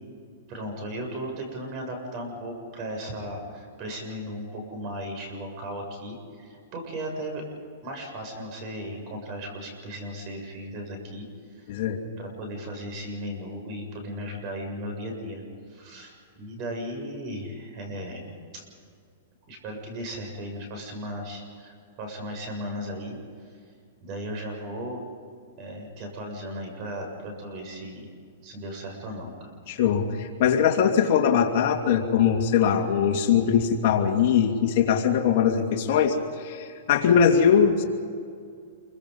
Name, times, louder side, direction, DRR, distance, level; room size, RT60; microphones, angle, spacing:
voice 1, 0.5-7.4 7.8-11.3 11.5-11.8 12.2-15.4 15.7-18.6 19.5-23.2 24.0-25.0 25.6-28.0 28.4-29.5, equal, 35° right, 3 dB, 7.2 m, -36 dB
voice 2, 11.7-12.0 29.7-37.8, left 7 dB, 50° left, 2 dB, 2.6 m, -21 dB
27.5 x 24.0 x 5.6 m, 2.2 s
hypercardioid pair, 155°, 0 cm